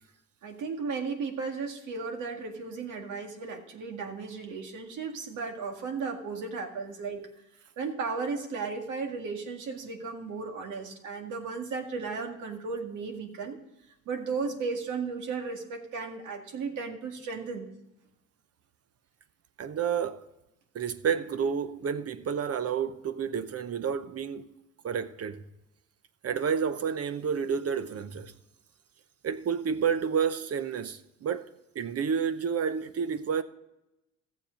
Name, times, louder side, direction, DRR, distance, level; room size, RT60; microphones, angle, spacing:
voice 1, 0.4-7.2 7.8-13.6 14.1-17.7, right 4 dB, 80° right, 2.0 m, -35 dB
voice 2, 19.6-20.3 20.7-24.5 24.8-25.4 26.2-28.3 29.2-31.5 31.7-33.4, right 7 dB, 55° right, 0.9 m, -30 dB
14.5 x 7.3 x 5.2 m
cardioid pair, 90°, 30 cm